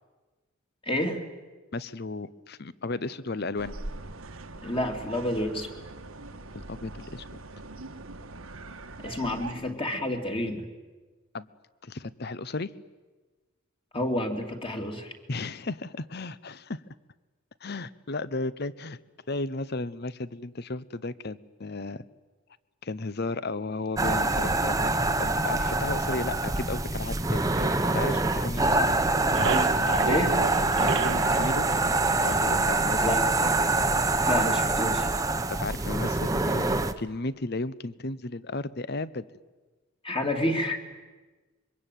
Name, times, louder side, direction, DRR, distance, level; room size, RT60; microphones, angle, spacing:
voice 1, 0.8-1.2 4.6-5.7 9.0-10.7 13.9-15.1 30.0-30.4 33.0-33.3 34.1-35.1 40.0-40.9, left 1 dB, 25° left, 4 dB, 2.8 m, -29 dB
voice 2, 1.7-3.7 6.5-7.3 11.3-11.5 11.8-12.7 15.3-16.8 17.6-19.0 19.3-22.0 22.8-24.9 25.2-28.9 30.8-31.7 32.2-33.2 35.5-39.3, left 3 dB, 50° left, 17 dB, 0.9 m, -34 dB
sound 1, 3.6-9.5, right 2 dB, 85° right, 1.5 m, -42 dB
sound 2, 24.0-36.9, right 2 dB, 15° right, 1.0 m, -25 dB
sound 3, 27.6-28.7 29.0-32.7, right 4 dB, 55° right, 0.9 m, -33 dB
25.5 x 23.5 x 9.2 m, 1.3 s
head